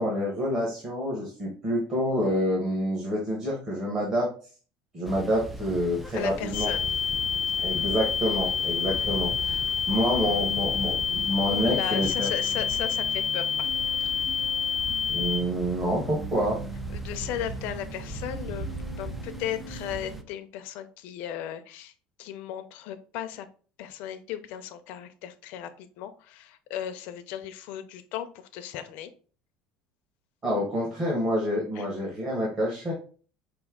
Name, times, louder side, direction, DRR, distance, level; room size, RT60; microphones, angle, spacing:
voice 1, 0.0-4.3 4.9-6.7 7.6-12.3 15.1-16.6 30.4-32.9, equal, 20° right, -4 dB, 1.2 m, -27 dB
sound 1, 5.0-20.2, right 1 dB, 5° right, 0.3 m, -39 dB
voice 2, 6.1-6.9 11.5-13.7 14.0-14.1 16.9-21.9 22.2-23.5 23.8-29.1 31.7-31.9, left 11 dB, 55° left, 9 dB, 0.6 m, -36 dB
sound 2, 6.5-15.4, left 7 dB, 90° left, 0.8 m, -28 dB
sound 3, 10.2-20.2, right 5 dB, 60° right, 0.8 m, -42 dB
5.2 x 2.7 x 3.6 m, 0.40 s
cardioid pair, 180°, 3 cm